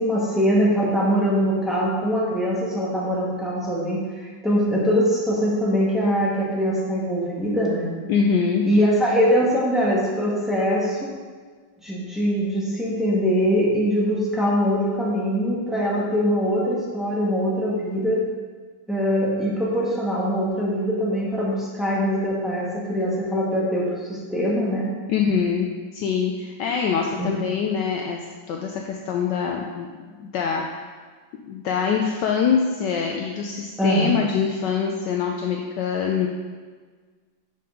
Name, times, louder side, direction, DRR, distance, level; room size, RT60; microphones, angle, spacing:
voice 1, 0.0-7.9 8.6-11.1 11.8-18.2 18.9-24.9 27.2-27.5 33.8-34.2, equal, ahead, -6 dB, 1.1 m, -22 dB
voice 2, 8.1-8.6 25.1-28.2 28.5-29.9 30.2-30.6 31.4-36.3, left 6 dB, 75° left, 1 dB, 1.1 m, -24 dB
5.6 x 5.4 x 5.0 m, 1.5 s
omnidirectional pair, 2.1 m